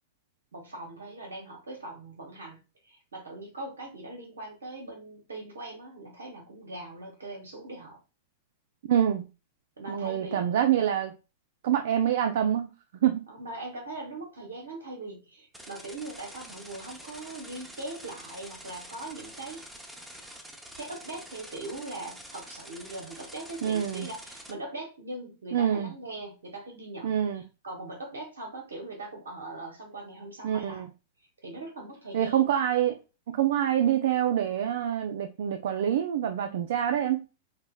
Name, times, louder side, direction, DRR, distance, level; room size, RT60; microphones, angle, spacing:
voice 1, 0.5-8.0 9.8-10.6 13.3-19.6 20.8-30.9 31.2-32.5, right 2 dB, 85° right, 0.9 m, -41 dB
voice 2, 8.9-9.3 9.9-11.1 11.6-12.7 13.0-13.2 23.6-24.1 25.5-25.9 27.0-27.4 30.4-30.9 32.1-33.0 33.3-37.2, right 10 dB, 70° right, 0.3 m, -26 dB
sound 1, 15.5-24.5, equal, 5° right, 0.7 m, -46 dB
5.2 x 2.1 x 2.2 m
hypercardioid pair, 110°, 0 cm